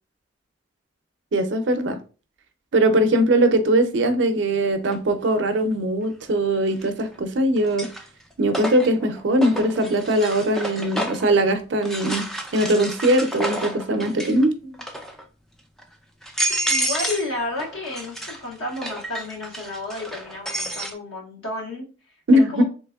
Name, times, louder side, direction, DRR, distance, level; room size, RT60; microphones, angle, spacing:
voice 1, 1.3-2.0 2.7-7.9 8.4-14.5 22.3-22.6, right 1 dB, 65° right, 8 dB, 0.5 m, -20 dB
sound 1, 4.9-5.0 6.7-7.2 7.6-11.3 11.8-14.4 14.7-15.2 15.8-15.9 16.2-17.3 17.6-20.9, right 1 dB, ahead, 0.3 m, -30 dB
voice 2, 16.7-21.9 22.3-22.6, left 2 dB, 90° left, -2 dB, 1.4 m, -31 dB
3.4 x 3.0 x 2.2 m, 0.34 s
head